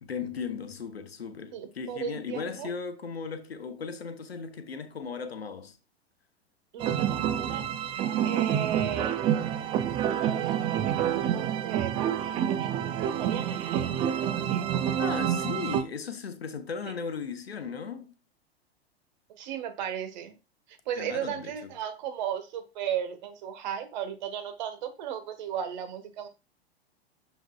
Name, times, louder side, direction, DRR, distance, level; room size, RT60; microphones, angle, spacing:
voice 1, 0.0-5.8 15.0-18.1 21.0-21.7, left 5 dB, 75° left, 1.0 m, -37 dB
voice 2, 1.5-2.7 6.7-7.9 8.2-9.2 10.1-12.7 13.2-14.0 14.5-14.6 19.3-20.3 20.7-26.3, right 9 dB, 45° right, 1.4 m, -35 dB
sound 1, 6.8-15.8, right 9 dB, 15° right, 0.4 m, -28 dB
6.9 x 6.1 x 2.3 m
figure-of-eight pair, 100°, 31 cm